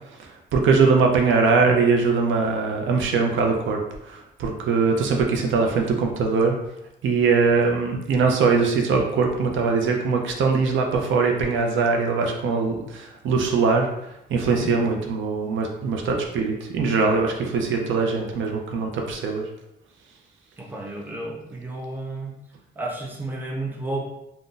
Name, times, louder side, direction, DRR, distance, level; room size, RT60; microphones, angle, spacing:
voice 1, 0.5-3.8 4.1-6.6 7.0-13.9 14.3-19.4, right 4 dB, 85° right, 2 dB, 0.5 m, -21 dB
voice 2, 20.6-22.4 22.8-24.0, right 2 dB, 10° right, -1 dB, 0.5 m, -32 dB
2.5 x 2.1 x 3.8 m, 0.87 s
wide cardioid pair, 150°, 19 cm